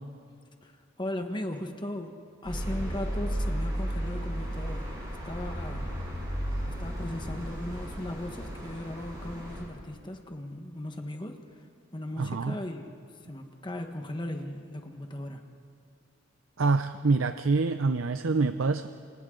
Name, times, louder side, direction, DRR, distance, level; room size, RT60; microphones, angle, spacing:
voice 1, 1.0-2.1 2.4-4.9 5.2-5.9 6.8-11.6 11.9-12.9 13.3-15.4, left 1 dB, 25° left, 4 dB, 1.4 m, -37 dB
sound 1, 2.4-9.6, equal, 20° right, 7.7 m, -34 dB
voice 2, 12.2-12.6 16.6-18.9, right 3 dB, 80° right, 10 dB, 0.6 m, -26 dB
29.0 x 28.0 x 3.9 m, 2.3 s
head